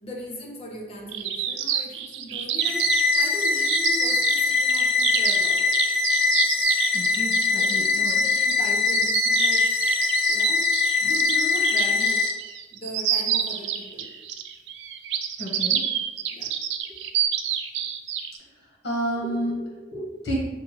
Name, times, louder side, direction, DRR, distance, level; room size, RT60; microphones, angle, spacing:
voice 1, 0.0-5.8 7.5-9.7 10.3-10.7 11.0-12.3 12.7-14.1 16.3-16.5, left 1 dB, 35° left, -1 dB, 0.7 m, -38 dB
sound 1, 1.1-18.4, right 9 dB, 80° right, 0.4 m, -28 dB
sound 2, 2.6-12.3, left 4 dB, 65° left, 1.0 m, -22 dB
voice 2, 6.9-8.1 15.4-15.8 18.8-20.4, right 1 dB, 85° left, -3 dB, 1.1 m, -30 dB
5.8 x 2.3 x 3.0 m, 1.2 s
head